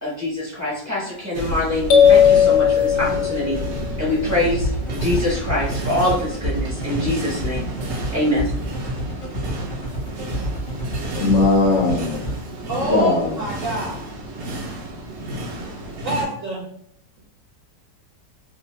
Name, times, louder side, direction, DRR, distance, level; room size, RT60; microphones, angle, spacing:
voice 1, 0.0-3.6 4.0-7.6 8.1-8.5, left 1 dB, 15° right, -8 dB, 0.7 m, -24 dB
sound 1, 1.3-16.2, right 1 dB, 90° right, 0.5 m, -31 dB
sound 2, 1.9-3.8, left 8 dB, 90° left, 1.2 m, -15 dB
sound 3, 4.6-12.3, equal, 30° left, 0.6 m, -28 dB
voice 2, 11.2-12.2 12.6-13.4, left 3 dB, 60° left, -5 dB, 0.8 m, -19 dB
voice 3, 12.7-14.1 16.0-16.7, right 2 dB, 65° right, -3 dB, 0.8 m, -26 dB
2.7 x 2.4 x 3.0 m, 0.68 s
omnidirectional pair, 1.9 m